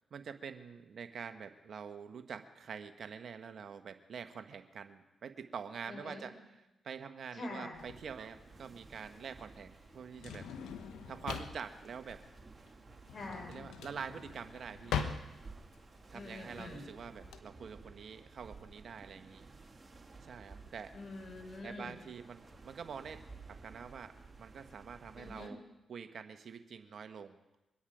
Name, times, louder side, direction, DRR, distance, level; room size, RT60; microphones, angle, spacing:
voice 1, 0.1-6.4 6.8-10.5 11.1-12.2 13.5-15.2 16.1-19.5 20.2-20.9 21.6-23.2 23.5-25.6 25.9-27.4, right 6 dB, 65° right, 9 dB, 1.1 m, -46 dB
voice 2, 5.9-6.2 7.3-7.8 13.1-13.6 16.1-16.9 20.9-22.0 25.2-25.5, left 2 dB, 55° left, 2 dB, 5.6 m, -45 dB
sound 1, 7.7-25.5, right 3 dB, 35° right, 1.9 m, -55 dB
Drawer open or close, 7.8-17.4, left 7 dB, 80° left, 1.0 m, -42 dB
23.5 x 9.9 x 5.0 m, 1.0 s
supercardioid pair, 50°, 0 cm